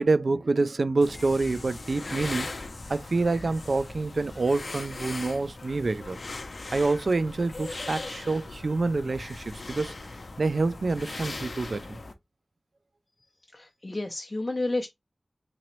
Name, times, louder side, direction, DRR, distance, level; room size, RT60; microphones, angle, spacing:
voice 1, 0.0-2.5 2.9-6.2 6.7-9.9 10.4-12.0, right 3 dB, 75° right, 0.3 m, -27 dB
sound 1, 1.0-12.1, left 2 dB, 70° left, 0.7 m, -39 dB
voice 2, 13.5-14.9, left 2 dB, 35° left, 0.6 m, -30 dB
3.8 x 3.0 x 3.0 m
wide cardioid pair, 65°, 0 cm